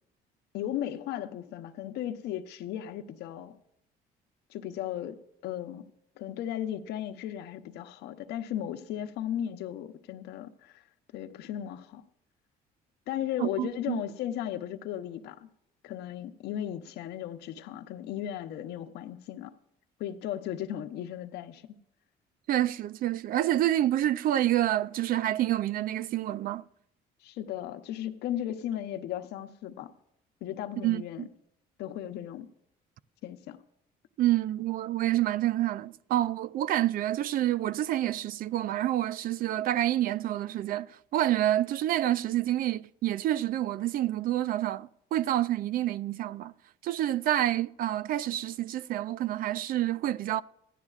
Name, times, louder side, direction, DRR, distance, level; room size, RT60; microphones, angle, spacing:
voice 1, 0.5-3.6 4.5-5.2 5.4-5.9 6.2-10.8 11.1-12.0 13.1-15.5 15.8-19.5 20.0-21.8 27.2-29.9 30.4-31.3 31.8-32.5 33.2-33.6, left 11 dB, 80° left, 0.8 m, -36 dB
voice 2, 13.4-14.0 22.5-26.6 30.8-31.3 34.2-46.5 46.8-50.4, right 13 dB, 60° right, 0.4 m, -28 dB
15.5 x 11.0 x 2.4 m
cardioid pair, 110°, 17 cm